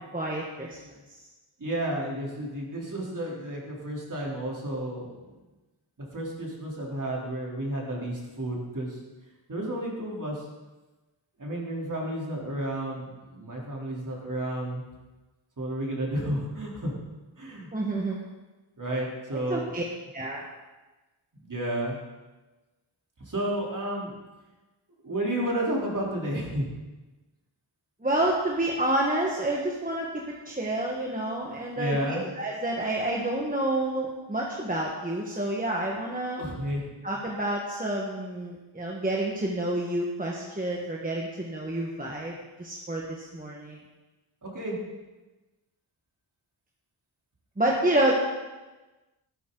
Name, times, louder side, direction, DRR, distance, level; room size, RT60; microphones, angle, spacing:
voice 1, 0.1-0.9 17.7-18.2 19.5-19.8 20.1-20.4 28.0-36.4 37.0-43.8 47.6-48.1, right 1 dB, 20° right, -2 dB, 1.5 m, -29 dB
voice 2, 1.6-5.4 6.0-9.0 9.5-10.5 11.4-14.8 15.6-16.9 17.4-17.7 18.8-19.7 21.4-22.0 23.3-24.1 25.0-26.7 31.7-32.2 36.4-36.8 44.4-44.8, right 1 dB, 40° right, -3 dB, 3.5 m, -31 dB
13.5 x 12.0 x 4.0 m, 1.1 s
wide cardioid pair, 105°, 47 cm